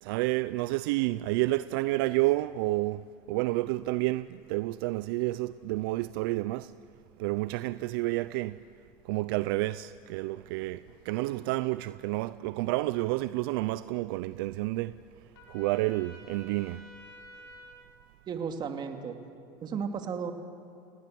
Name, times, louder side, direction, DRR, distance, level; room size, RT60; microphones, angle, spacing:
voice 1, 0.0-6.7 7.2-8.6 9.0-15.0 15.5-16.9, right 19 dB, 75° right, 0.5 m, -30 dB
Trumpet, 15.3-17.9, left 1 dB, 90° left, 5.4 m, -51 dB
voice 2, 18.3-19.2 19.6-20.3, right 6 dB, 35° right, 2.5 m, -34 dB
30.0 x 18.5 x 7.8 m
supercardioid pair, 115°, 12 cm